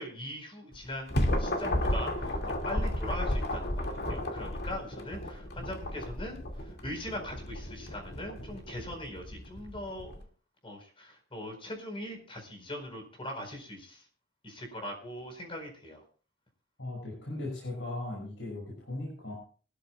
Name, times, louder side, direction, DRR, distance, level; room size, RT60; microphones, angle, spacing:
voice 1, 0.0-10.2 10.6-14.0 14.4-16.0, left 1 dB, 30° left, 4 dB, 4.5 m, -41 dB
sound 1, 0.7-10.2, left 1 dB, 55° left, 2.2 m, -33 dB
voice 2, 16.8-19.3, left 2 dB, 75° left, -3 dB, 6.2 m, -38 dB
22.5 x 13.0 x 2.3 m, 0.39 s
head